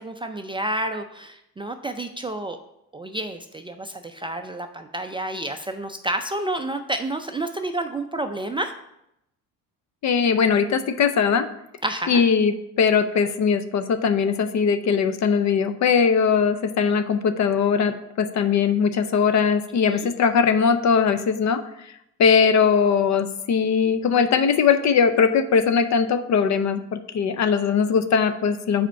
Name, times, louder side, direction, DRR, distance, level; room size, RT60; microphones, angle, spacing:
voice 1, 0.0-2.6 2.9-8.7 11.8-12.2 19.8-20.0, right 1 dB, 15° right, 6 dB, 0.4 m, -29 dB
voice 2, 10.0-11.5 12.1-21.6 22.2-28.9, left 6 dB, 50° left, 11 dB, 0.6 m, -20 dB
5.0 x 4.3 x 5.6 m, 0.81 s
cardioid pair, 90°, 38 cm